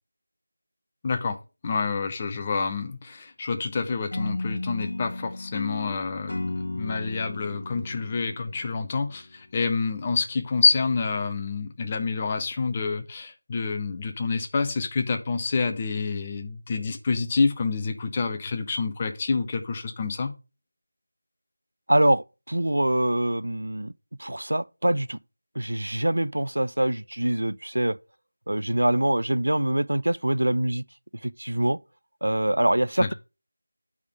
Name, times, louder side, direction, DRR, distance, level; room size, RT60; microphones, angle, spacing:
voice 1, 1.0-1.4 1.6-20.3 33.0-33.1, left 4 dB, 20° left, 0.6 m, -27 dB
sound 1, 4.1-9.2, left 2 dB, 60° left, 0.6 m, -34 dB
voice 2, 21.9-23.9 24.2-25.2 25.6-28.0 28.5-30.8 31.2-31.8 32.2-33.1, right 1 dB, 90° right, 0.4 m, -24 dB
8.4 x 3.5 x 5.0 m
figure-of-eight pair, 175°, 0 cm